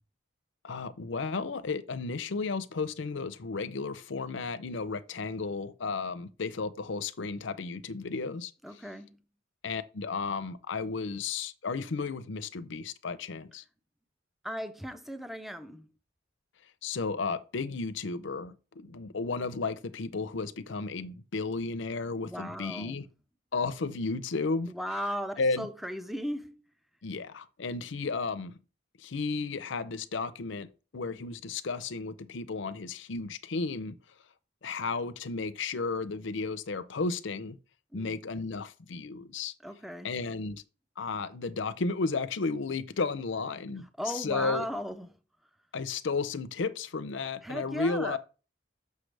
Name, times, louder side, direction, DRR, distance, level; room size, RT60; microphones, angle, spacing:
voice 1, 0.6-8.5 9.6-13.6 16.8-23.0 23.5-24.7 25.4-25.7 27.0-28.6 29.0-34.0 34.6-37.6 37.9-39.5 40.0-40.6 41.0-44.7 45.7-48.2, left 4 dB, 65° left, 0.6 m, -33 dB
voice 2, 8.6-9.2 14.4-15.9 22.2-23.0 24.7-26.6 37.9-38.2 39.6-40.1 44.0-45.1 47.4-48.2, equal, ahead, 0.4 m, -36 dB
6.7 x 6.4 x 3.3 m
head